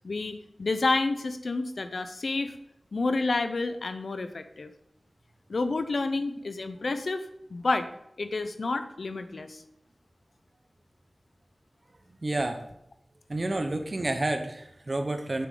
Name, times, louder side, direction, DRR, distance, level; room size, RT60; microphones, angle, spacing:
voice 1, 0.0-2.6 2.9-4.7 5.5-7.3 7.5-7.9 8.2-9.6, left 3 dB, 90° left, 9 dB, 0.7 m, -29 dB
voice 2, 12.2-12.6 13.3-15.5, right 2 dB, 50° right, 6 dB, 0.9 m, -29 dB
9.5 x 7.0 x 3.9 m, 0.78 s
wide cardioid pair, 75°, 0 cm